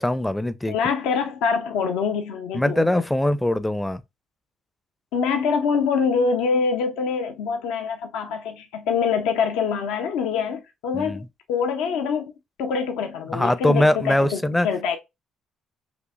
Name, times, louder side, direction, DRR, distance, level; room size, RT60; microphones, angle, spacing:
voice 1, 0.0-0.8 2.5-4.0 10.9-11.2 13.3-14.7, left 1 dB, 10° left, 0.5 m, -22 dB
voice 2, 0.7-2.9 5.1-11.2 11.5-12.3 12.6-15.0, left 6 dB, 75° left, 0.6 m, -25 dB
6.1 x 2.7 x 2.5 m
hypercardioid pair, 50°, 0 cm